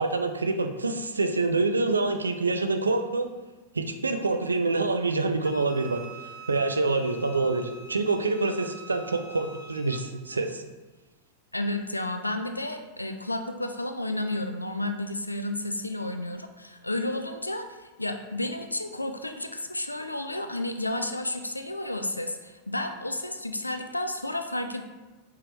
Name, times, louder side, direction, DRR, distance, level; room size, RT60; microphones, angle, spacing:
voice 1, 0.0-3.3 3.7-10.6, right 3 dB, 75° right, 6 dB, 0.4 m, -26 dB
Wind instrument woodwind instrument, 5.4-10.1, right 3 dB, 30° left, 0.6 m, -45 dB
voice 2, 11.5-24.8, left 1 dB, 85° left, 6 dB, 0.3 m, -32 dB
4.7 x 3.6 x 3.0 m, 1.2 s
figure-of-eight pair, 90°, 0 cm